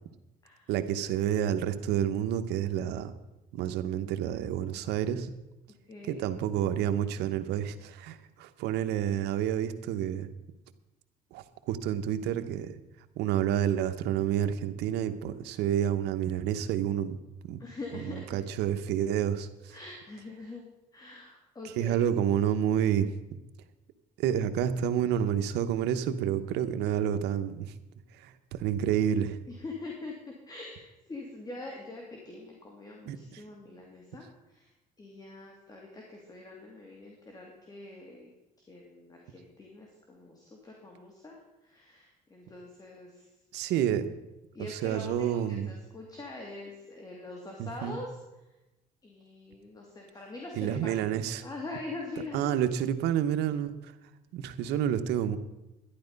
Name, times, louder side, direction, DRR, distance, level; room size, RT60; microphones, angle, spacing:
voice 1, 0.7-3.1 3.5-5.3 6.1-10.3 11.3-12.7 13.2-17.2 17.5-17.6 17.9-19.8 21.8-23.1 24.2-27.7 28.1-29.4 33.0-33.4 43.5-44.1 44.6-45.7 47.6-48.0 50.6-51.4 52.3-53.9 54.3-55.4, right 10 dB, 85° right, 9 dB, 0.9 m, -29 dB
voice 2, 5.9-6.2 17.6-18.4 19.7-20.7 20.9-22.0 29.5-34.7 35.0-38.3 38.7-41.4 41.6-43.3 44.5-45.4 45.7-48.2 49.0-51.0 51.4-52.5, left 2 dB, 25° left, 0 dB, 2.4 m, -43 dB
12.0 x 10.5 x 5.3 m, 0.97 s
cardioid pair, 110°, 17 cm